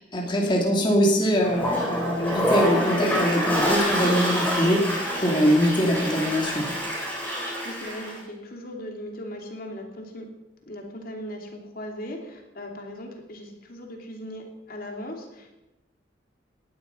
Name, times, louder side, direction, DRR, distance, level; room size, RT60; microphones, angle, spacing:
voice 1, 0.0-6.6, equal, 25° left, -1 dB, 2.5 m, -23 dB
Toilet flush, 1.4-8.2, equal, 10° left, 6.7 m, -26 dB
voice 2, 7.4-10.3 10.7-15.6, left 1 dB, 50° left, 2 dB, 2.9 m, -38 dB
19.0 x 12.0 x 5.7 m, 0.98 s
head